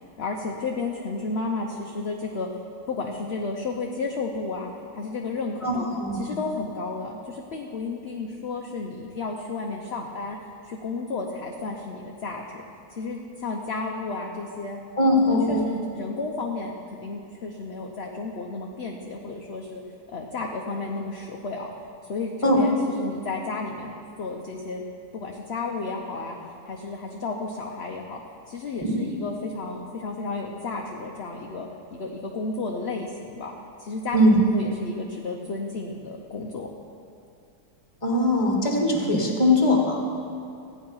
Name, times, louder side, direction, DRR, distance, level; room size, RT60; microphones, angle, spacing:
voice 1, 0.2-2.5 2.9-5.8 6.2-10.4 10.6-12.6 12.9-14.8 15.2-19.8 20.1-21.7 22.1-24.8 25.1-26.4 26.6-28.2 28.5-36.7, left 3 dB, 50° left, 1 dB, 1.0 m, -32 dB
voice 2, 5.6-6.2 15.0-15.7 22.4-22.6 28.8-29.0 34.1-34.4 38.0-40.0, left 1 dB, 20° left, -1 dB, 1.7 m, -21 dB
15.0 x 9.5 x 5.6 m, 2.5 s
omnidirectional pair, 1.6 m